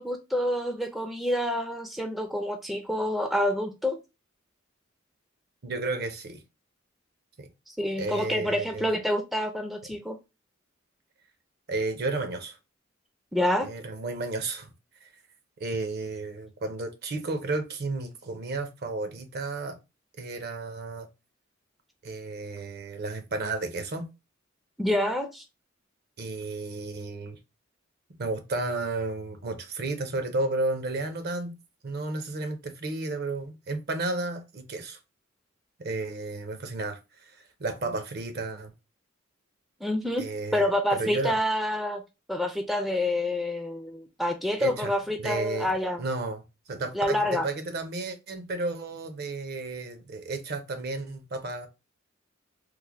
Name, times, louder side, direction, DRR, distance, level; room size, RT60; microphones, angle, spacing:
voice 1, 0.0-4.0 7.7-10.2 13.3-13.7 24.8-25.4 39.8-40.2 40.5-42.0 42.3-46.0 46.9-47.5, left 1 dB, ahead, 0.4 m, -27 dB
voice 2, 5.6-6.4 7.4-7.5 8.0-8.9 11.7-12.6 13.6-14.7 15.0-15.1 15.6-19.8 20.2-21.1 22.0-24.1 26.2-27.4 28.2-31.5 31.8-35.0 35.8-38.7 40.2-41.4 44.6-44.9 45.2-45.7 46.0-46.4 46.7-51.7, right 2 dB, 55° right, 0.6 m, -32 dB
3.2 x 2.1 x 3.4 m
head